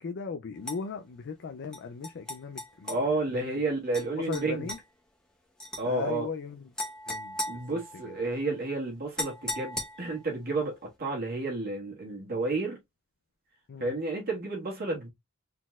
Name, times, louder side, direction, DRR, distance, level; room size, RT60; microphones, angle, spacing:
voice 1, 0.0-2.9 3.3-3.6 4.2-4.8 5.9-6.7 7.1-8.2 13.7-13.9, left 5 dB, 50° left, 0.4 m, -38 dB
sound 1, 0.6-0.8 1.7-3.0 3.9-4.1 4.3-4.8 5.6-5.8 6.8-8.3 9.2-10.2, left 1 dB, 5° left, 1.2 m, -37 dB
voice 2, 2.9-4.7 5.8-6.2 7.5-10.7 11.0-12.8 13.8-15.1, right 2 dB, 45° right, 1.7 m, -31 dB
4.1 x 4.0 x 2.4 m
head